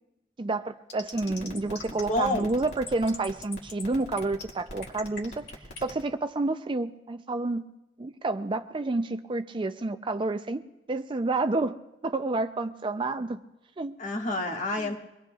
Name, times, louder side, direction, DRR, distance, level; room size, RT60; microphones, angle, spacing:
voice 1, 0.4-5.5 5.8-7.6 8.0-11.8 12.0-13.4 13.8-14.0 14.8-14.9, right 2 dB, 30° right, 9 dB, 0.4 m, -29 dB
sound 1, 0.9-6.0, left 3 dB, 70° left, 2.2 m, -41 dB
voice 2, 1.3-1.7 2.1-2.5 14.0-15.0, left 2 dB, 45° left, 1 dB, 1.7 m, -29 dB
24.0 x 19.5 x 2.4 m, 0.95 s
head